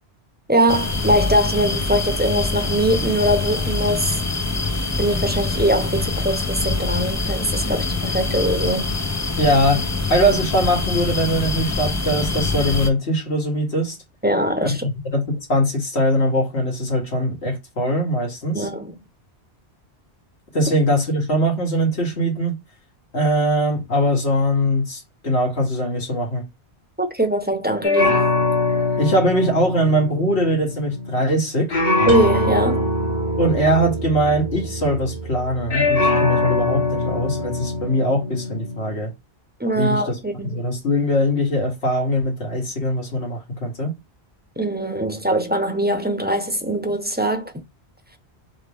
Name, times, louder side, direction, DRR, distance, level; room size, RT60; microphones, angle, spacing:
voice 1, 0.5-4.2 5.0-9.0 14.2-14.9 18.5-19.0 27.0-28.3 32.1-32.9 39.6-40.6 44.6-47.5, right 1 dB, 10° right, 0.7 m, -22 dB
sound 1, 0.7-12.9, left 3 dB, 25° left, 0.3 m, -24 dB
voice 2, 9.4-14.0 14.6-18.7 20.5-22.6 23.1-26.5 29.0-31.8 33.4-39.1 39.7-40.2 40.5-43.9, equal, 75° left, 1.7 m, -21 dB
sound 2, 27.8-31.4 31.7-35.3 35.7-39.0, left 2 dB, 60° left, 1.3 m, -23 dB
sound 3, 32.1-37.9, right 4 dB, 60° right, 1.4 m, -30 dB
3.6 x 3.3 x 3.5 m
omnidirectional pair, 1.1 m